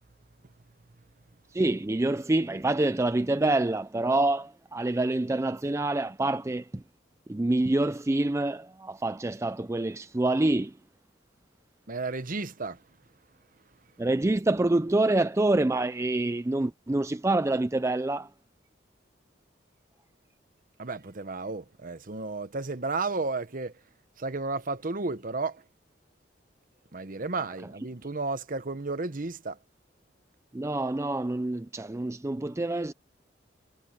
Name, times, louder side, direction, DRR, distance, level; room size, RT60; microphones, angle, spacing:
voice 1, 1.5-6.8 7.3-10.8 14.0-18.3 27.6-27.7 30.5-32.9, right 2 dB, 15° right, 0.4 m, -26 dB
voice 2, 11.9-12.8 20.8-23.7 24.2-25.6 26.9-29.6, right 3 dB, 45° right, 1.0 m, -33 dB
head